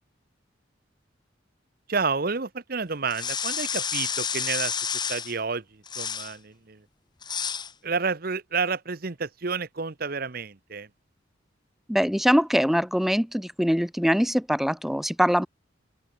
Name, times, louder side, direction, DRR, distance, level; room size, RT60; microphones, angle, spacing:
voice 1, 1.9-6.8 7.8-10.9, right 4 dB, 50° right, 1.0 m, -30 dB
sound 1, 3.1-5.3 5.9-6.3 7.2-7.7, left 7 dB, 25° left, 1.4 m, -30 dB
voice 2, 11.9-15.5, equal, ahead, 0.9 m, -23 dB
open air
head